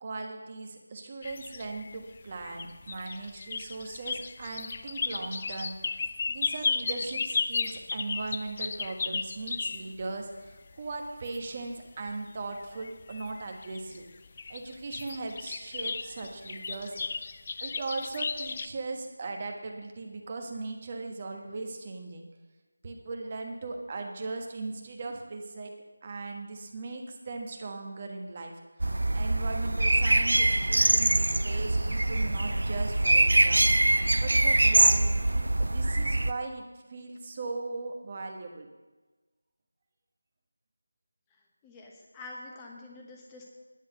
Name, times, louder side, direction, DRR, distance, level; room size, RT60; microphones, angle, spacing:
voice 1, 0.0-14.0 14.5-17.0 17.6-22.3 22.8-25.7 26.0-28.5 29.1-33.7 34.2-36.6 36.9-38.7, right 3 dB, 30° right, 3 dB, 1.3 m, -38 dB
sound 1, 1.2-10.0 10.4-11.4 12.1-12.2 12.6-14.0 14.2-18.7, left 4 dB, 35° left, 0.4 m, -35 dB
Blackbird singing in the dead of night, 28.8-36.3, right 2 dB, 75° right, 0.5 m, -24 dB
voice 2, 41.6-43.4, left 2 dB, 10° left, -1 dB, 1.2 m, -46 dB
10.5 x 6.2 x 7.7 m, 1.2 s
figure-of-eight pair, 170°, 0 cm